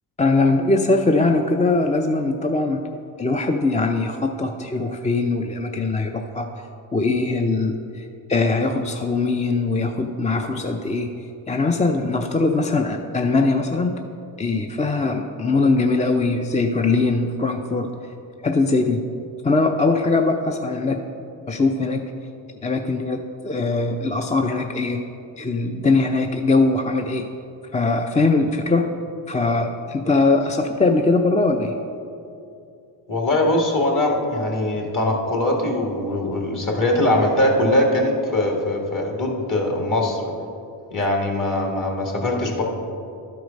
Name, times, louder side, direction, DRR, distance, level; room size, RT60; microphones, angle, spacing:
voice 1, 0.2-2.8 3.2-6.5 6.9-11.1 11.5-13.9 14.4-17.9 18.4-19.1 19.4-21.0 21.5-22.1 22.6-25.0 25.4-27.3 27.7-28.9 29.3-31.7, left 3 dB, 15° left, 5 dB, 0.4 m, -21 dB
voice 2, 33.1-40.3 40.9-42.6, left 1 dB, 40° left, 0 dB, 1.9 m, -21 dB
12.0 x 4.7 x 5.2 m, 2.6 s
cardioid pair, 75°, 46 cm